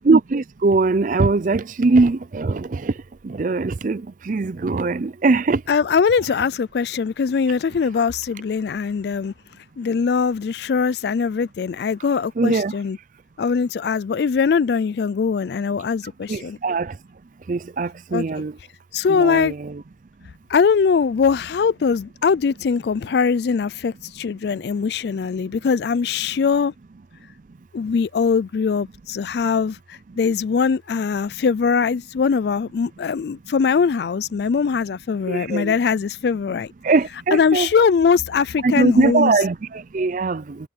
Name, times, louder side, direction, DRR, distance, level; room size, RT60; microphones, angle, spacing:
voice 1, 0.0-2.9 3.2-5.6 12.4-12.7 16.3-16.9 17.5-18.5 19.1-19.8 35.3-35.8 36.8-37.7 38.6-40.6, right 3 dB, 45° right, 0.4 m, -21 dB
voice 2, 5.7-9.3 9.8-13.0 13.4-16.6 18.1-18.2 18.9-19.5 20.5-26.7 27.7-36.7 37.3-39.3, left 5 dB, 60° left, 0.3 m, -21 dB
head